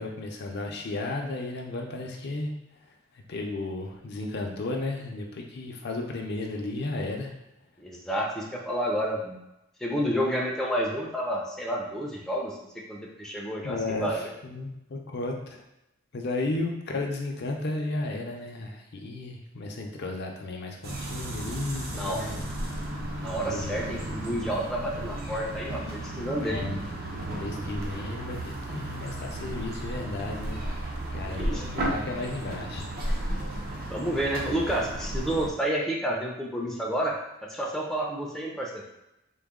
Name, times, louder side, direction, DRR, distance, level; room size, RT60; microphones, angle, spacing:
voice 1, 0.0-2.5 3.3-7.3 13.6-15.6 16.1-22.4 23.5-23.8 26.4-26.8 27.3-30.6 31.1-32.8, left 2 dB, 55° left, 1 dB, 0.5 m, -34 dB
voice 2, 7.8-9.4 9.8-12.6 12.9-14.2 21.9-22.2 23.2-26.6 31.2-31.7 33.9-37.2 37.4-38.8, equal, ahead, -2 dB, 0.4 m, -30 dB
sound 1, 20.8-35.5, right 1 dB, 50° right, 0.5 m, -34 dB
3.9 x 2.1 x 3.6 m, 0.91 s
head